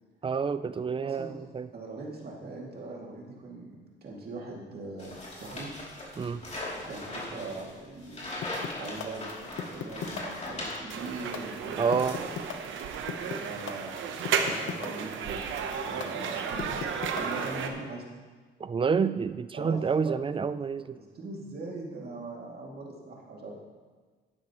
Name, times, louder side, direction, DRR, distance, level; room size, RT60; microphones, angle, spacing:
voice 1, 0.2-1.7 6.2-6.4 11.8-12.2 18.6-21.0, right 5 dB, 25° right, 14 dB, 0.4 m, -28 dB
voice 2, 1.0-1.3 1.7-5.7 6.9-8.2 8.8-11.9 12.1-12.3 13.4-14.0 14.3-16.9 17.1-18.1 19.5-19.8 20.0-20.2 21.0-23.6, right 3 dB, 50° right, -2 dB, 2.4 m, -41 dB
sound 1, 5.0-11.4 11.7-12.7, left 1 dB, 35° left, 2.9 m, -40 dB
sound 2, 8.4-17.6, left 9 dB, 75° left, 0.9 m, -37 dB
sound 3, 10.9-17.7, right 6 dB, 75° right, 0.9 m, -33 dB
12.0 x 9.5 x 3.0 m, 1.4 s
cardioid pair, 90°, 20 cm